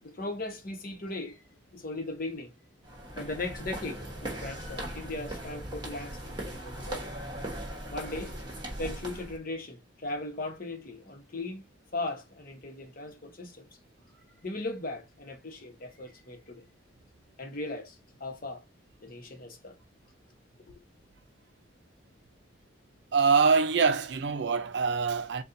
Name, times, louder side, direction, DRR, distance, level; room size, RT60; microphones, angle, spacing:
voice 1, 0.0-1.4 1.7-2.5 3.1-7.1 7.9-8.3 8.8-11.6 11.9-13.7 14.4-16.7 17.4-18.6 19.0-19.7, left 2 dB, 45° left, 1.0 m, -38 dB
sound 1, 2.8-9.4, right 1 dB, 25° right, 1.1 m, -39 dB
voice 2, 23.1-25.4, right 5 dB, 60° right, 0.5 m, -24 dB
4.2 x 2.3 x 3.8 m
head